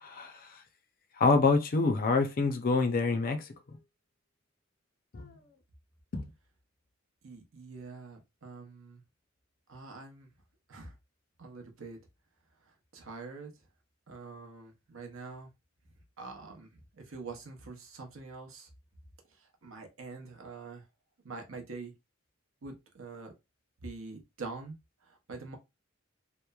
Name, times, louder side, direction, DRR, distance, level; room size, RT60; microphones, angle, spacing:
voice 1, 0.0-0.5 1.2-3.5 5.1-5.4 6.1-6.3, left 3 dB, 45° left, 0.5 m, -26 dB
voice 2, 7.2-9.0 9.7-10.3 10.7-10.9 11.4-12.0 12.9-13.5 14.1-15.5 16.2-18.7 19.6-20.8 21.2-21.9 22.6-23.3 23.8-24.8 25.3-25.6, right 3 dB, 75° right, 0.7 m, -45 dB
3.0 x 2.0 x 2.3 m
head